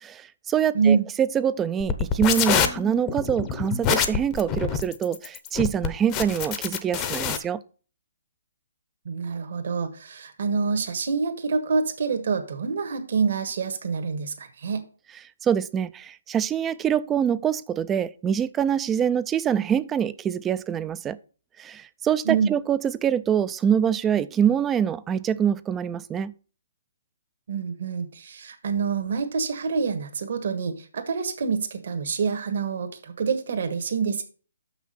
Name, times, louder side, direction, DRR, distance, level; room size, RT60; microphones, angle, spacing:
voice 1, 0.0-7.6 15.4-21.2 21.6-26.3, right 8 dB, 10° right, 0.3 m, -25 dB
voice 2, 0.7-1.1 9.0-14.8 22.2-22.5 27.5-34.2, right 5 dB, 60° right, 1.4 m, -26 dB
sound 1, 1.8-7.4, left 8 dB, 20° left, 0.7 m, -25 dB
6.1 x 6.0 x 5.6 m
hypercardioid pair, 160°, 0 cm